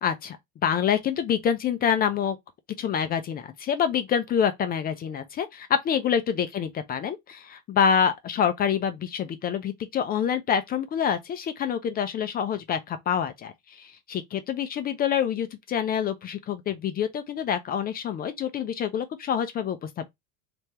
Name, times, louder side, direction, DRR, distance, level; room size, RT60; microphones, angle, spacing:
voice 1, 0.0-0.4 0.6-2.4 2.8-20.0, left 8 dB, 25° left, 0.4 m, -26 dB
3.4 x 3.3 x 2.8 m
supercardioid pair, 120°, 35 cm